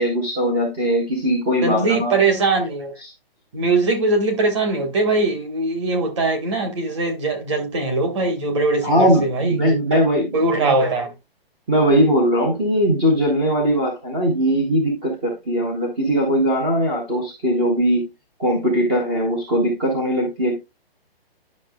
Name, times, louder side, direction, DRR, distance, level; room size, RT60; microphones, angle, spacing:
voice 1, 0.0-2.2 3.0-3.1 8.8-10.8 11.7-18.1 18.4-20.6, equal, 10° right, 0.6 m, -20 dB
voice 2, 1.6-2.9 3.5-10.0 10.3-11.1, right 3 dB, 30° right, 1.5 m, -21 dB
10.5 x 5.7 x 2.3 m
hypercardioid pair, 175°, 30 cm